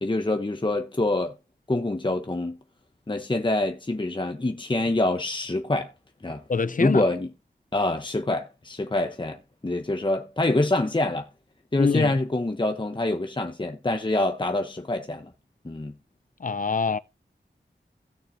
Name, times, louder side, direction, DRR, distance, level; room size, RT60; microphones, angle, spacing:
voice 1, 0.0-1.3 1.7-2.6 3.1-5.9 6.2-6.4 6.8-7.3 7.7-11.3 11.7-15.3 15.6-15.9, left 2 dB, 25° left, 1.0 m, -26 dB
voice 2, 6.5-7.0 11.8-12.2 16.4-17.0, left 5 dB, 50° left, 0.6 m, -25 dB
16.5 x 6.6 x 2.7 m
wide cardioid pair, 60°, 18 cm